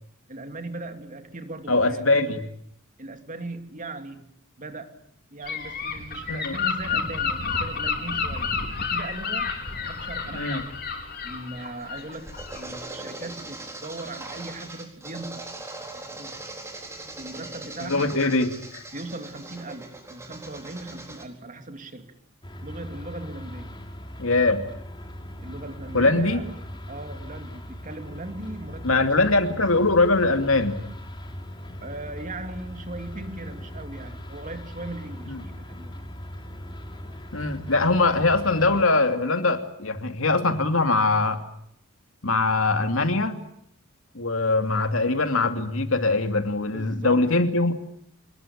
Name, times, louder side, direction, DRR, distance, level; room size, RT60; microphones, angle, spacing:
voice 1, 0.3-2.4 3.0-4.3 4.6-5.0 5.3-8.5 8.9-10.7 11.2-15.7 15.9-16.4 17.2-18.2 18.9-22.1 22.6-23.8 25.4-26.5 26.9-29.4 29.7-29.8 31.8-35.9 46.6-47.3, right 2 dB, 40° right, 7 dB, 2.8 m, -38 dB
voice 2, 1.7-2.4 6.3-6.6 10.3-10.6 17.8-18.8 24.2-24.6 25.9-26.4 28.8-30.8 35.3-35.4 37.3-41.4 42.2-43.4 44.1-47.7, left 3 dB, 75° left, 7 dB, 2.7 m, -22 dB
Gull seagull / Wind, 5.5-12.7, left 5 dB, 50° left, 5.0 m, -30 dB
sound 1, 11.6-21.3, right 2 dB, 15° right, 4.1 m, -40 dB
sound 2, 22.4-38.8, equal, 25° left, 3.4 m, -39 dB
26.0 x 21.0 x 8.7 m, 0.70 s
head